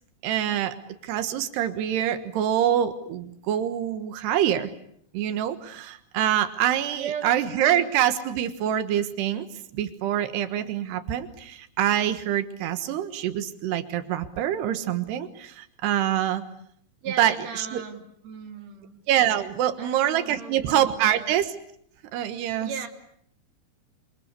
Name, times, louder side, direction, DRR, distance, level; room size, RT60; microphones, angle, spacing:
voice 1, 0.2-0.8 1.0-4.7 5.1-9.5 9.7-16.4 17.2-17.8 19.1-21.5 22.1-22.7, right 11 dB, 90° right, 10 dB, 3.5 m, -25 dB
voice 2, 6.9-7.4 7.6-7.9 17.0-19.0 19.8-21.3 22.6-22.9, right 7 dB, 45° right, 4 dB, 3.9 m, -37 dB
29.5 x 24.5 x 8.3 m, 0.68 s
omnidirectional pair, 4.6 m